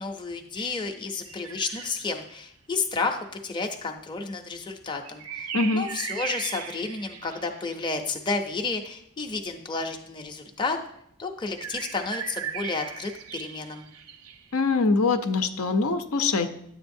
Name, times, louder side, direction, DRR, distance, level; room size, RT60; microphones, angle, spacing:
voice 1, 0.0-10.8 11.2-13.9, left 4 dB, 20° left, 3 dB, 0.6 m, -31 dB
sound 1, 0.6-2.2 5.0-7.8 11.5-14.5, right 7 dB, 80° right, 0.6 m, -38 dB
voice 2, 5.5-5.8 14.5-16.5, left 3 dB, 80° left, 8 dB, 0.7 m, -23 dB
10.0 x 7.8 x 2.6 m, 0.71 s
head